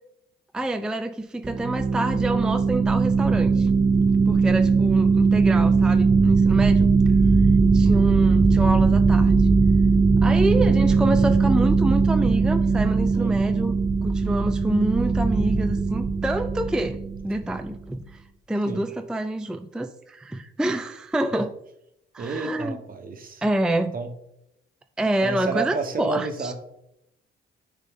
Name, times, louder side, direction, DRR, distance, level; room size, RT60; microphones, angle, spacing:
voice 1, 0.5-3.7 4.3-6.9 7.7-9.5 10.2-13.8 14.0-21.6 22.1-22.8 23.4-23.9 25.0-26.5, right 1 dB, 5° right, 8 dB, 0.4 m, -27 dB
sound 1, 1.4-17.7, right 4 dB, 20° right, 0.8 m, -19 dB
voice 2, 22.2-23.4 23.9-24.1 25.2-26.5, right 4 dB, 45° right, 6 dB, 1.2 m, -31 dB
9.7 x 3.8 x 3.7 m, 0.80 s
cardioid pair, 90°, 20 cm